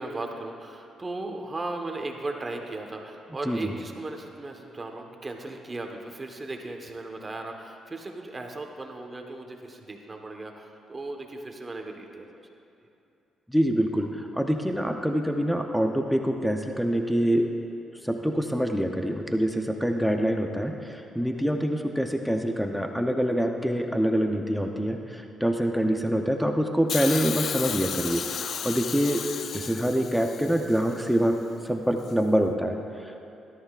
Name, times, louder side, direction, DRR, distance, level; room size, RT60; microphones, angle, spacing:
voice 1, 0.0-12.3, right 2 dB, 25° right, 3 dB, 1.2 m, -37 dB
voice 2, 13.5-17.5 18.0-29.2 29.5-31.4 31.6-33.2, equal, ahead, 4 dB, 0.7 m, -25 dB
Hiss, 26.9-31.0 32.1-32.2, left 7 dB, 60° left, 0.4 m, -33 dB
17.0 x 13.0 x 2.5 m, 2.7 s
cardioid pair, 90°, 0 cm